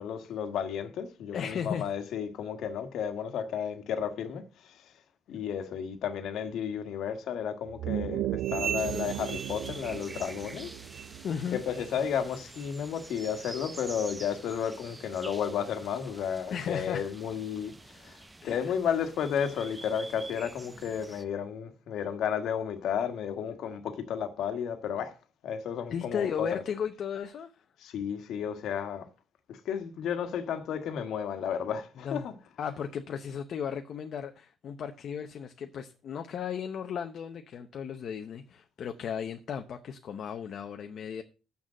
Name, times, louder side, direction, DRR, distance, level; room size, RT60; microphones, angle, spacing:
voice 1, 0.0-5.0 5.3-10.7 11.5-25.2 25.4-26.6 27.8-29.1 29.5-32.4 32.6-32.8, left 8 dB, 65° left, 1.5 m, -33 dB
voice 2, 1.3-1.8 11.2-11.6 16.5-17.0 18.4-18.6 25.9-27.5 32.0-32.3 32.6-41.2, left 7 dB, 50° left, 0.8 m, -35 dB
sound 1, 7.7-12.5, right 14 dB, 90° right, 0.4 m, -36 dB
sound 2, 8.4-10.6 10.9-11.3 11.7-11.9 12.5-12.7 13.4-13.5 14.2-14.3, right 8 dB, 55° right, 0.9 m, -40 dB
sound 3, 8.8-21.2, right 2 dB, 10° right, 0.7 m, -47 dB
7.0 x 6.4 x 7.6 m
cardioid pair, 160°, 0 cm